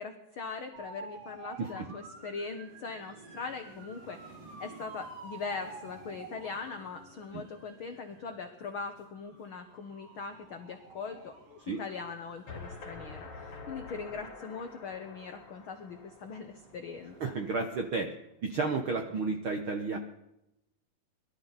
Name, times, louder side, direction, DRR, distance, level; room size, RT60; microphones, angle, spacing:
voice 1, 0.0-17.3, left 5 dB, 85° left, 6 dB, 1.1 m, -41 dB
sound 1, 0.7-17.9, right 3 dB, 50° right, 3.0 m, -51 dB
sound 2, 12.5-17.4, left 3 dB, 60° left, 4.6 m, -47 dB
voice 2, 17.2-18.1 18.4-20.0, right 4 dB, 70° right, 5 dB, 1.2 m, -32 dB
22.0 x 13.0 x 4.1 m, 0.88 s
omnidirectional pair, 3.9 m